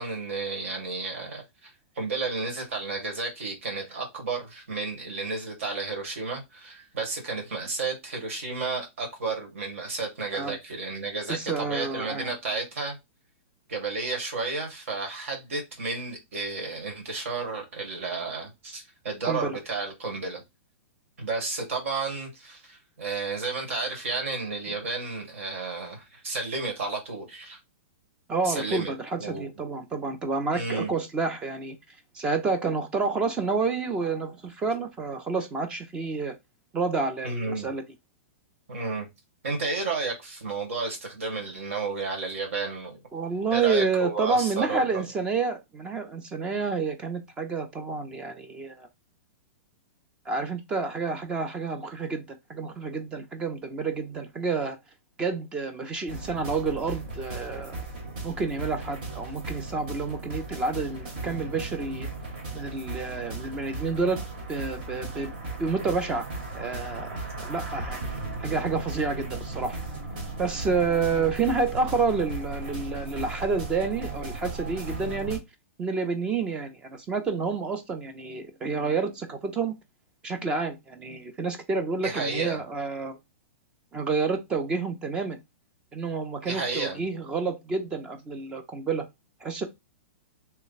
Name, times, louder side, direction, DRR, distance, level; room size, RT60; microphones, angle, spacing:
voice 1, 0.0-13.0 13.7-20.4 21.2-27.6 28.4-29.5 30.5-30.9 37.2-37.7 38.7-39.1 39.4-43.0 43.5-45.0 82.0-82.6 86.4-87.0, right 3 dB, 70° right, 1.7 m, -32 dB
voice 2, 11.3-12.3 19.2-19.6 28.3-31.8 32.1-36.3 36.7-37.8 43.1-48.9 50.3-54.8 55.2-57.8 58.2-62.1 62.5-64.2 64.5-65.3 65.6-66.2 66.5-67.1 67.4-69.8 70.4-75.4 75.8-79.7 80.2-83.2 83.9-85.4 85.9-89.0 89.4-89.7, right 4 dB, 15° right, 0.4 m, -29 dB
sound 1, 56.1-75.4, right 2 dB, 45° right, 1.3 m, -36 dB
3.2 x 2.1 x 4.0 m
hypercardioid pair, 165°, 7 cm